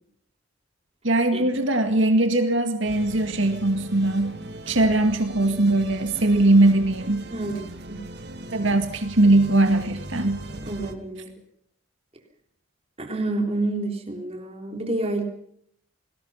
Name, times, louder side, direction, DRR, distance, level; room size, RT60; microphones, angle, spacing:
voice 1, 1.0-4.3 4.7-7.2 8.5-10.4, right 2 dB, 70° right, 6 dB, 2.1 m, -20 dB
sound 1, 2.9-10.9, right 1 dB, 55° right, 2.3 m, -39 dB
voice 2, 7.3-8.0 10.6-11.3 13.0-15.2, right 2 dB, 30° right, 3 dB, 3.7 m, -29 dB
28.0 x 20.0 x 5.8 m, 0.67 s
head